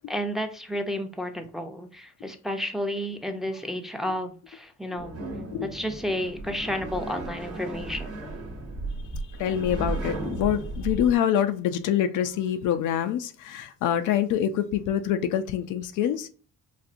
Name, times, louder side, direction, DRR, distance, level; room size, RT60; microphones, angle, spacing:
voice 1, 0.1-5.2 5.6-8.1, equal, ahead, 0.5 m, -31 dB
sound 1, 5.0-11.1, right 2 dB, 50° right, 0.9 m, -35 dB
voice 2, 9.4-16.3, left 10 dB, 80° left, 0.5 m, -25 dB
4.1 x 2.6 x 2.5 m
cardioid pair, 90°, 30 cm